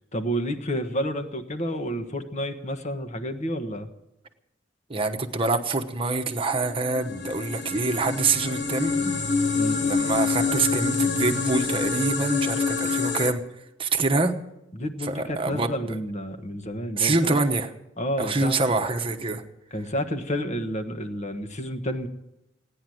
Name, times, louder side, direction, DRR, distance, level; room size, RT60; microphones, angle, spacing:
voice 1, 0.1-3.9 9.5-9.8 14.7-17.4 18.0-18.8 19.7-22.1, equal, 40° left, 7 dB, 1.3 m, -30 dB
voice 2, 4.9-9.2 9.8-13.4 13.8-14.3 15.0-16.0 17.0-17.7 18.2-19.4, right 3 dB, 30° right, 5 dB, 1.1 m, -25 dB
sound 1, 6.5-13.3, left 4 dB, 70° left, 1.4 m, -26 dB
16.5 x 10.0 x 7.8 m, 0.89 s
head